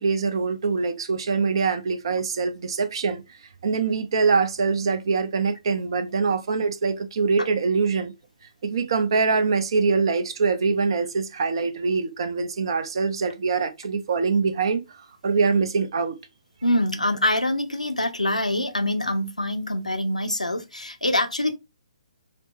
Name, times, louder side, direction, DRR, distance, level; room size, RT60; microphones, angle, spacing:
voice 1, 0.0-3.2 3.6-8.1 8.6-14.8 15.2-16.1, right 4 dB, 45° right, 0.5 m, -23 dB
voice 2, 16.6-21.6, left 1 dB, 85° left, 0.6 m, -25 dB
4.3 x 2.0 x 2.9 m
figure-of-eight pair, 130°, 4 cm